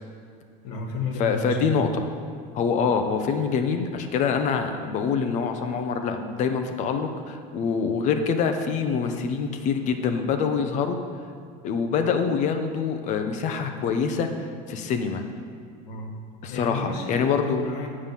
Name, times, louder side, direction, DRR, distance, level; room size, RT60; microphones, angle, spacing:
voice 1, 0.6-1.8 15.8-16.1 16.5-17.9, left 2 dB, 80° left, 2 dB, 1.7 m, -31 dB
voice 2, 1.2-2.1 2.5-11.0 11.6-15.2 16.4-17.7, left 6 dB, 40° left, 6 dB, 0.9 m, -25 dB
8.7 x 5.6 x 7.4 m, 2.3 s
cardioid pair, 155°, 19 cm